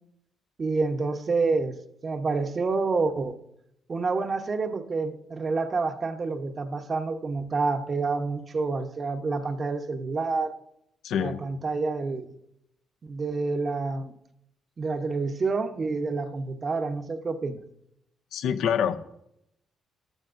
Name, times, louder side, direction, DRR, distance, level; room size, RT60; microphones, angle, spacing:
voice 1, 0.6-1.8 2.0-3.4 3.9-10.5 11.2-12.3 13.0-14.1 14.8-17.6, right 4 dB, 40° right, 0.9 m, -28 dB
voice 2, 11.0-11.4 18.3-19.0, left 8 dB, 80° left, 0.6 m, -26 dB
14.5 x 12.0 x 2.6 m
cardioid pair, 90°, 0 cm